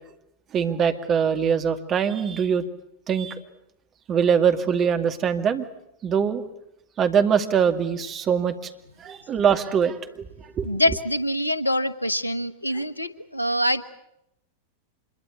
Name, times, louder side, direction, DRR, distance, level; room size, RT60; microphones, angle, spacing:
voice 1, 0.5-2.6 3.1-3.4 4.1-5.7 6.0-6.4 7.0-8.6 9.0-10.3 10.6-10.7, right 7 dB, 30° right, 7 dB, 2.2 m, -22 dB
voice 2, 10.6-13.9, equal, 85° left, 15 dB, 1.1 m, -25 dB
26.5 x 22.0 x 8.2 m, 0.82 s
figure-of-eight pair, 90°, 0 cm